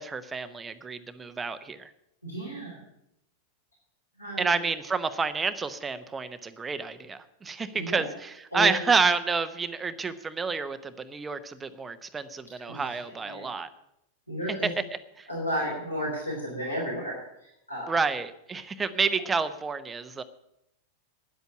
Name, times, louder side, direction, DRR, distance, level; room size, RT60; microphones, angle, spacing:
voice 1, 0.0-1.9 4.4-13.7 15.2-15.3 17.9-20.2, right 4 dB, 15° right, 11 dB, 0.9 m, -29 dB
voice 2, 2.2-2.8 4.2-4.6 7.7-8.0 8.5-8.7 12.7-13.4 14.3-14.7 15.3-17.9, equal, 90° left, -6 dB, 3.9 m, -33 dB
10.5 x 8.2 x 10.0 m, 0.82 s
figure-of-eight pair, 90°, 0 cm